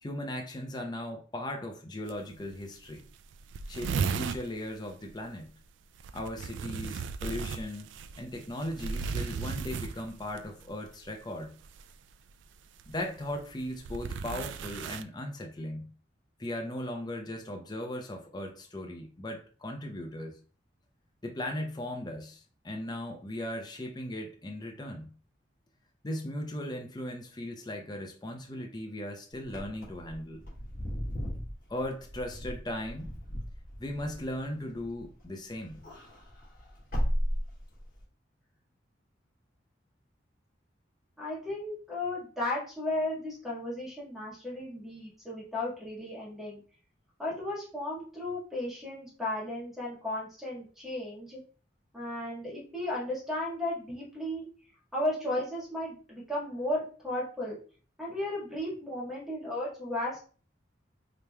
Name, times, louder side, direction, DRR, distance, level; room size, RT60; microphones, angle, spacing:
voice 1, 0.0-3.0 3.7-5.5 6.1-11.6 12.9-15.9 16.4-20.3 21.2-25.1 26.0-30.4 31.7-33.1 33.8-35.8, left 1 dB, 25° left, 2 dB, 0.6 m, -38 dB
sound 1, 2.1-2.2 2.5-2.6 2.9-3.0 3.1-4.5 6.0-10.4 11.6-11.9 12.8-15.0, right 5 dB, 80° right, 0.3 m, -35 dB
Wind / Car, 29.4-35.2 35.6-38.0, equal, 50° left, 1.6 m, -36 dB
voice 2, 41.2-46.6 47.2-51.4 51.9-54.5 54.9-57.6 58.0-60.2, left 1 dB, ahead, -6 dB, 1.6 m, -34 dB
5.0 x 2.9 x 2.3 m, 0.39 s
head